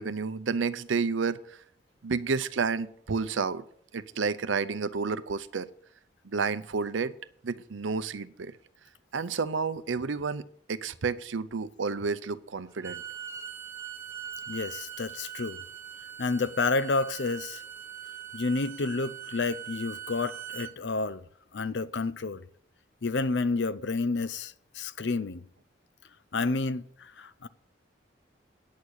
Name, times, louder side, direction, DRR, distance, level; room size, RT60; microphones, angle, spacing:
voice 1, 0.0-1.4 2.0-3.6 3.9-5.7 6.2-7.1 7.4-8.5 9.1-10.4 10.7-13.0, right 5 dB, 85° right, 0.6 m, -30 dB
Bowed string instrument, 12.7-20.7, right 9 dB, 15° right, 0.9 m, -42 dB
voice 2, 14.5-15.6 16.2-17.6 18.3-21.2 21.5-22.4 23.0-25.4 26.3-27.5, left 3 dB, 65° left, 0.6 m, -30 dB
9.3 x 6.4 x 8.6 m
head